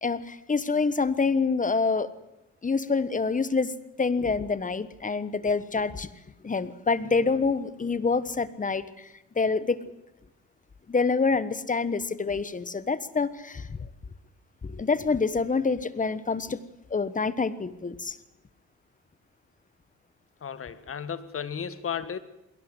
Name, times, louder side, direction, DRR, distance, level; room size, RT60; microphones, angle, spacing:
voice 1, 0.0-2.1 2.6-6.1 6.4-9.1 9.3-9.8 10.9-13.9 14.6-16.6 16.9-18.2, left 4 dB, 25° left, 1.3 m, -26 dB
voice 2, 20.4-22.2, left 7 dB, 45° left, 1.7 m, -34 dB
21.5 x 17.5 x 7.9 m
cardioid pair, 90°, 30 cm